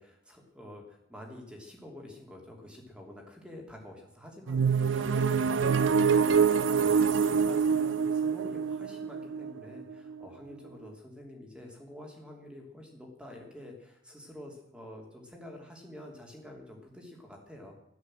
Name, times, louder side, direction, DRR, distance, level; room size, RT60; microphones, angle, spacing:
voice 1, 0.0-17.7, left 1 dB, 5° right, 1 dB, 2.9 m, -48 dB
sound 1, 4.5-10.2, right 6 dB, 70° right, 0.6 m, -26 dB
13.5 x 11.5 x 7.6 m, 0.78 s
head